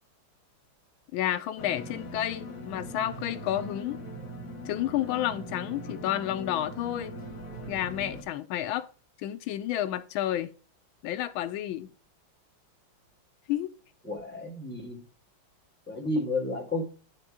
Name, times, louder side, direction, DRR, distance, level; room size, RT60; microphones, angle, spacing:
voice 1, 1.1-4.0 4.7-7.2 7.7-8.9 9.2-10.5 11.0-11.9 13.5-13.7, left 12 dB, 85° left, 1.4 m, -30 dB
sound 1, 1.6-8.2, equal, 55° left, 2.4 m, -41 dB
voice 2, 14.0-15.0 15.9-16.8, left 2 dB, 5° left, 1.6 m, -31 dB
9.0 x 3.5 x 4.8 m
omnidirectional pair, 2.2 m